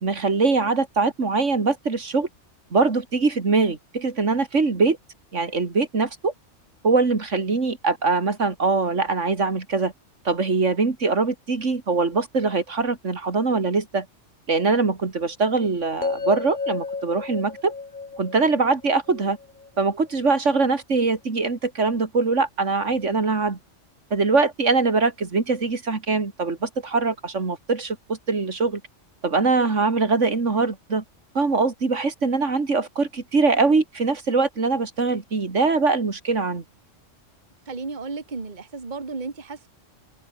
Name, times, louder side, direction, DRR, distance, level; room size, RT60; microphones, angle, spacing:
voice 1, 0.0-2.3 2.7-5.0 5.3-6.3 6.8-9.9 10.2-14.1 14.5-17.7 18.2-19.4 19.8-23.6 24.1-28.8 29.2-31.0 31.3-36.6, right 4 dB, 70° right, 2.8 m, -22 dB
sound 1, 16.0-20.1, left 4 dB, 40° left, 1.7 m, -32 dB
voice 2, 37.7-39.7, right 4 dB, 35° right, 1.9 m, -33 dB
omnidirectional pair, 1.3 m